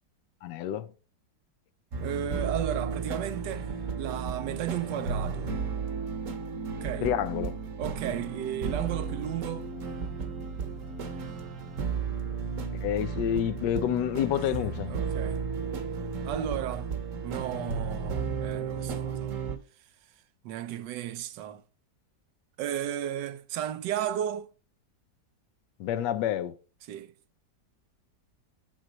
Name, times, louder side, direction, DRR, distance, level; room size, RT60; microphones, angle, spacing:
voice 1, 0.4-0.9 7.0-7.6 12.8-14.9 25.8-26.5, left 10 dB, 85° left, 1.3 m, -28 dB
sound 1, 1.9-19.6, right 5 dB, 55° right, 1.2 m, -34 dB
voice 2, 2.0-3.7 4.0-5.5 6.6-7.1 7.8-9.6 14.4-14.5 14.9-15.4 16.2-17.0 17.2-19.4 20.4-21.6 22.6-24.5 26.9-27.1, right 11 dB, 85° right, 1.3 m, -34 dB
8.0 x 4.7 x 4.1 m
omnidirectional pair, 1.9 m